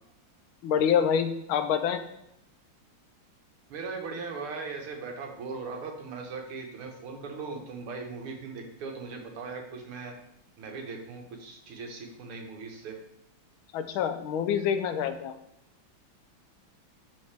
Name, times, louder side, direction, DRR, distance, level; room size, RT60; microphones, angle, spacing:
voice 1, 0.6-2.1 13.7-15.4, left 8 dB, 75° left, 9 dB, 1.4 m, -26 dB
voice 2, 3.7-10.1 10.6-13.0, right 4 dB, 85° right, 2 dB, 2.1 m, -39 dB
12.5 x 4.2 x 3.4 m, 0.81 s
omnidirectional pair, 2.3 m